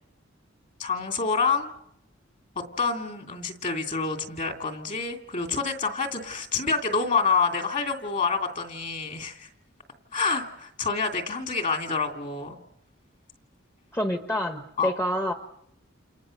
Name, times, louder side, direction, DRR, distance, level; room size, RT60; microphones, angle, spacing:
voice 1, 0.8-1.7 2.5-9.5 10.1-12.6 14.8-14.9, left 4 dB, 40° left, 5 dB, 2.9 m, -27 dB
voice 2, 13.9-15.3, equal, 15° left, 6 dB, 1.2 m, -27 dB
29.5 x 28.5 x 6.6 m, 0.77 s
head